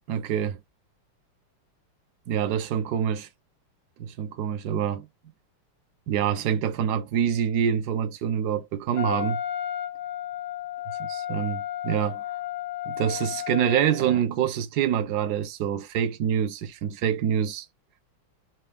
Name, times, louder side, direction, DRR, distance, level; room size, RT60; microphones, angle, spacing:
voice 1, 0.1-0.6 2.3-3.3 4.0-5.1 6.1-9.4 11.1-12.2 12.9-17.7, right 8 dB, 70° right, 0.9 m, -26 dB
Wind instrument woodwind instrument, 9.0-14.2, left 11 dB, 75° left, 1.3 m, -33 dB
5.6 x 2.4 x 3.4 m
omnidirectional pair, 2.4 m